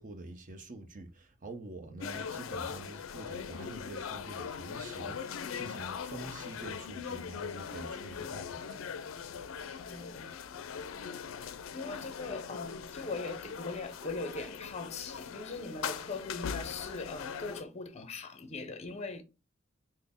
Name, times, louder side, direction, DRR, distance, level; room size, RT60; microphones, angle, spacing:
voice 1, 0.0-9.0, right 2 dB, 40° right, 0.7 m, -46 dB
sound 1, 2.0-17.6, left 6 dB, 75° left, 0.4 m, -40 dB
voice 2, 9.7-10.3 11.7-19.2, left 3 dB, 35° left, 0.6 m, -40 dB
4.1 x 2.1 x 3.5 m
head